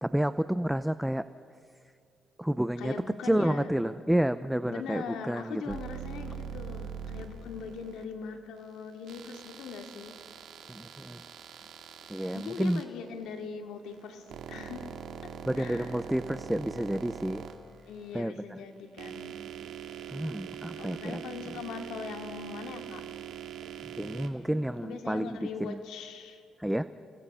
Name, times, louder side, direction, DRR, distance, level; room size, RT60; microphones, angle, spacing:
voice 1, 0.0-1.2 2.4-2.9 3.2-5.8 10.7-11.2 12.1-12.8 15.5-17.4 18.1-18.6 20.1-21.2 24.0-25.8 26.6-26.9, right 1 dB, 5° right, 13 dB, 0.6 m, -30 dB
voice 2, 2.8-3.7 4.7-10.2 12.3-14.9 15.2-15.3 15.6-16.0 17.9-19.4 20.7-23.0 24.8-26.4, left 6 dB, 85° left, 4 dB, 2.4 m, -41 dB
sound 1, 5.7-8.0 9.1-12.8 13.9-18.2 18.8-24.3, right 8 dB, 75° right, 1.9 m, -43 dB
30.0 x 18.0 x 5.6 m, 2.4 s
cardioid pair, 90°, 0 cm